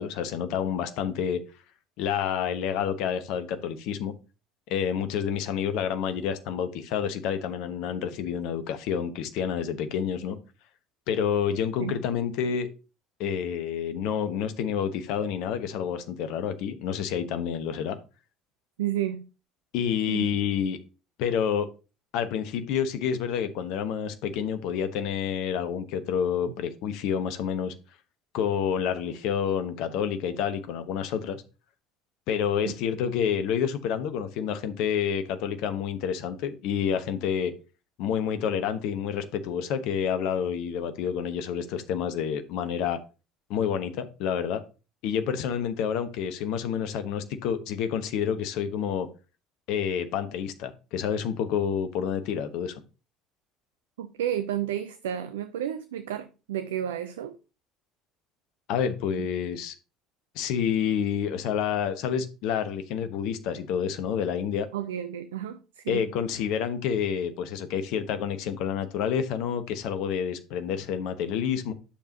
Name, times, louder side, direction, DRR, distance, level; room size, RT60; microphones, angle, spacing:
voice 1, 0.0-1.4 2.0-4.1 4.7-10.4 11.1-12.7 13.2-18.0 19.7-20.8 21.2-21.7 22.1-27.7 28.3-31.4 32.3-37.5 38.0-43.0 43.5-44.6 45.0-49.1 49.7-52.8 58.7-59.7 60.3-64.7 65.9-71.7, left 8 dB, 55° left, 1.0 m, -28 dB
voice 2, 18.8-19.3 20.1-20.3 32.6-32.7 54.0-57.4 59.2-59.3 64.7-66.1, right 11 dB, 70° right, 0.5 m, -31 dB
10.5 x 6.9 x 2.8 m
figure-of-eight pair, 60°, 0 cm